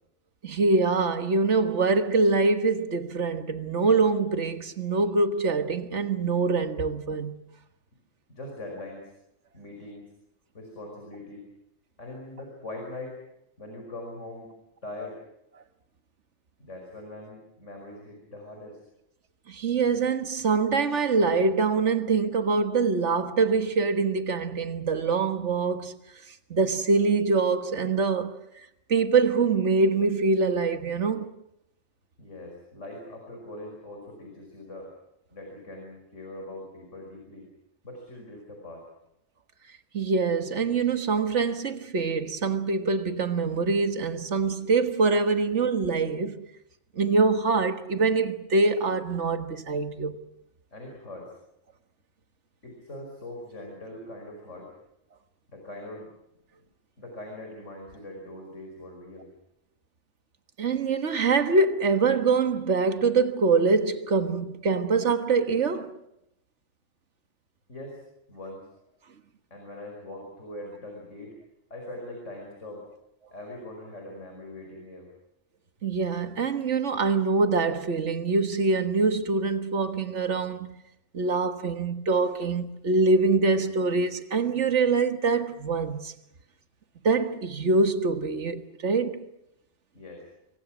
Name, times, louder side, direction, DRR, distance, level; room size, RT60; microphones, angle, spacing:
voice 1, 0.4-7.4 19.5-26.0 26.5-28.3 28.9-31.3 39.9-46.4 46.9-50.2 60.6-66.0 75.8-80.7 81.1-86.1 87.0-89.2, right 4 dB, 65° right, 1.8 m, -24 dB
voice 2, 8.3-9.1 9.5-10.0 10.5-11.5 12.0-13.2 13.6-14.5 14.8-15.2 16.6-18.8 32.2-34.9 35.3-37.5 37.8-38.8 50.7-51.3 52.6-54.7 55.5-56.1 57.0-59.3 67.7-68.0 68.3-68.7 69.5-71.3 71.7-72.9 73.3-75.1 89.9-90.2, left 1 dB, 75° left, 5.8 m, -41 dB
27.5 x 23.0 x 6.2 m
omnidirectional pair, 1.3 m